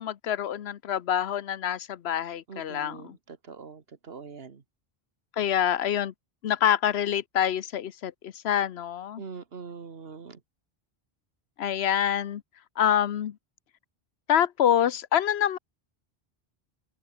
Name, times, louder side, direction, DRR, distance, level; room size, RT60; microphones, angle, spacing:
voice 1, 0.0-3.2 5.4-6.1 6.4-9.2 11.6-12.4 12.8-13.4 14.3-15.6, left 10 dB, 85° left, 1.0 m, -26 dB
voice 2, 2.5-3.2 3.5-4.6 9.2-10.4, right 5 dB, 70° right, 1.7 m, -42 dB
open air
omnidirectional pair, 1.0 m